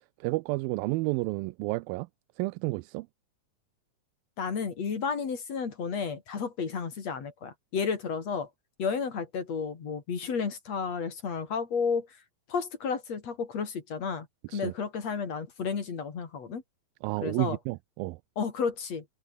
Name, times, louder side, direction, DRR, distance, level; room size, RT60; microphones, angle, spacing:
voice 1, 0.2-2.1 2.4-3.1 14.5-14.7 17.0-18.2, right 22 dB, 85° right, 2.4 m, -31 dB
voice 2, 4.4-8.5 8.8-12.1 12.5-14.3 14.5-16.6 17.2-17.6 18.4-19.1, left 5 dB, 50° left, 3.9 m, -32 dB
omnidirectional pair, 4.1 m